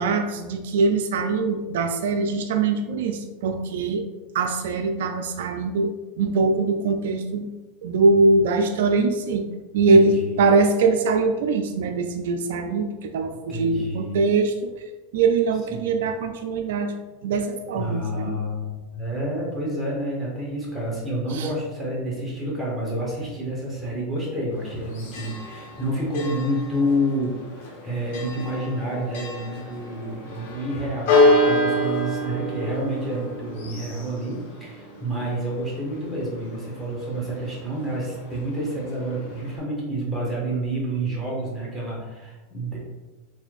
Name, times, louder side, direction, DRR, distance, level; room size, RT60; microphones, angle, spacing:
voice 1, 0.0-4.0 4.3-7.5 7.8-9.5 9.7-14.7 15.1-16.9 17.2-18.3 21.3-21.5, right 3 dB, 75° right, 6 dB, 0.3 m, -22 dB
voice 2, 9.9-10.3 13.5-14.2 15.7-15.8 17.7-42.8, right 1 dB, ahead, -6 dB, 1.5 m, -29 dB
Church bell, 24.5-39.6, left 1 dB, 65° left, 1.1 m, -28 dB
4.2 x 3.1 x 2.4 m, 1.2 s
supercardioid pair, 120°, 0 cm